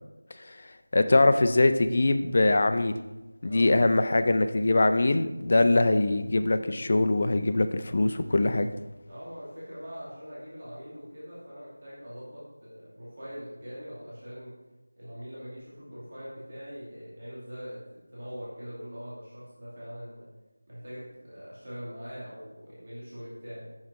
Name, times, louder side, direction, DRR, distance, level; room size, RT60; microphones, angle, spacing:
voice 1, 0.9-3.0 3.4-8.7, left 2 dB, 35° left, 9 dB, 0.3 m, -22 dB
voice 2, 3.5-4.2 9.1-14.6 15.0-20.3 20.7-23.7, equal, 35° right, -9 dB, 2.0 m, -42 dB
6.1 x 5.7 x 3.5 m, 1.1 s
figure-of-eight pair, 170°, 0 cm